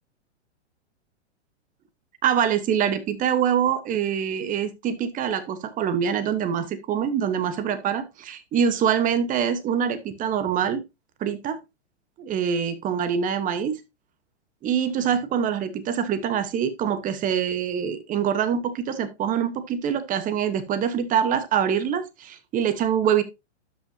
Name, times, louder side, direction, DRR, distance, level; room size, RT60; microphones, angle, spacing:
voice 1, 2.2-10.8 11.2-11.6 12.2-13.8 14.6-23.2, right 8 dB, 25° right, 1.1 m, -24 dB
12.5 x 5.5 x 2.7 m
hypercardioid pair, 125°, 34 cm